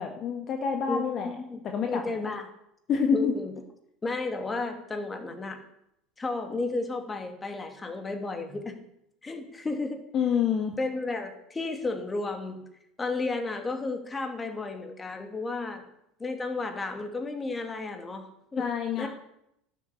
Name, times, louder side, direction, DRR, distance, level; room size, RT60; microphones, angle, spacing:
voice 1, 0.0-1.4 1.6-2.2 2.9-3.3 10.1-10.7 18.6-19.1, left 6 dB, 45° left, 4 dB, 1.5 m, -27 dB
voice 2, 0.9-1.6 1.9-2.5 3.1-3.5 4.0-5.6 6.2-8.8 9.2-10.0 10.8-12.6 13.0-15.8 16.2-18.3 18.5-18.7 19.0-19.1, left 3 dB, 20° left, 5 dB, 2.6 m, -33 dB
12.0 x 8.2 x 8.5 m, 0.78 s
hypercardioid pair, 70°, 0 cm